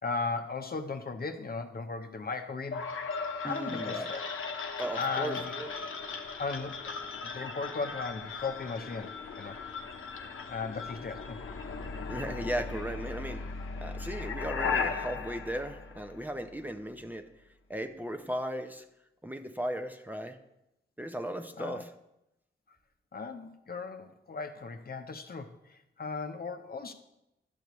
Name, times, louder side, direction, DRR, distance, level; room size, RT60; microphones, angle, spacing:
voice 1, 0.0-2.9 3.4-4.2 5.0-5.5 6.4-9.9 10.5-11.4 21.6-21.8 23.1-26.9, left 4 dB, 50° left, 6 dB, 0.8 m, -37 dB
sound 1, 2.7-16.6, left 5 dB, 85° left, 0.9 m, -37 dB
voice 2, 3.4-4.1 4.8-5.7 12.1-13.5 13.8-17.3 17.7-18.9 19.2-20.4 21.0-21.9, right 1 dB, 10° right, 5 dB, 0.7 m, -36 dB
12.0 x 6.6 x 3.1 m, 0.88 s
cardioid pair, 60°, 21 cm